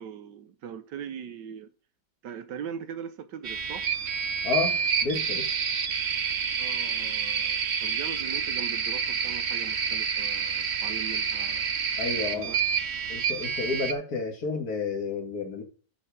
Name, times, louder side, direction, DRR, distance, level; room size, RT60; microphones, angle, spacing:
voice 1, 0.0-1.7 2.2-3.9 6.6-11.7 12.1-12.6, right 8 dB, 85° right, 1.6 m, -41 dB
sound 1, 3.4-13.9, right 6 dB, 50° right, 1.0 m, -28 dB
voice 2, 4.4-5.5 12.0-12.5 13.1-15.6, left 4 dB, 60° left, 2.4 m, -31 dB
8.9 x 6.7 x 5.1 m
omnidirectional pair, 1.8 m